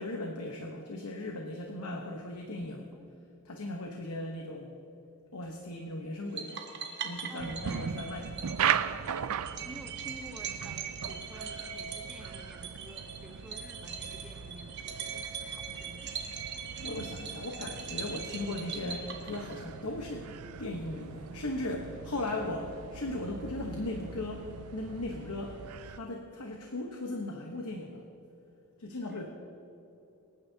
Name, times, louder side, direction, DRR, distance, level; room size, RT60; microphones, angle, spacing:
voice 1, 0.0-2.9 3.4-4.8 5.3-6.6 7.0-8.4 16.8-20.3 20.6-28.0 28.8-29.2, left 2 dB, 85° left, 2 dB, 1.0 m, -37 dB
voice 2, 2.9-3.3 7.3-7.9 9.6-16.1 29.1-29.2, equal, 5° right, 3 dB, 0.8 m, -51 dB
sound 1, 6.4-19.8, right 6 dB, 50° right, 1.1 m, -41 dB
sound 2, 7.4-26.0, right 8 dB, 80° right, 0.4 m, -39 dB
25.5 x 9.5 x 2.8 m, 2.8 s
head